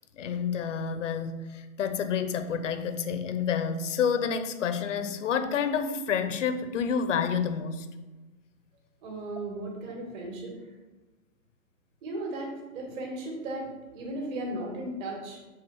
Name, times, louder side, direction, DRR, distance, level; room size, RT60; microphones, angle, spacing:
voice 1, 0.1-7.9, left 7 dB, 60° left, 9 dB, 1.0 m, -29 dB
voice 2, 9.0-10.8 12.0-15.4, right 1 dB, 35° right, 0 dB, 2.4 m, -36 dB
8.1 x 4.0 x 6.3 m, 1.2 s
hypercardioid pair, 145°, 43 cm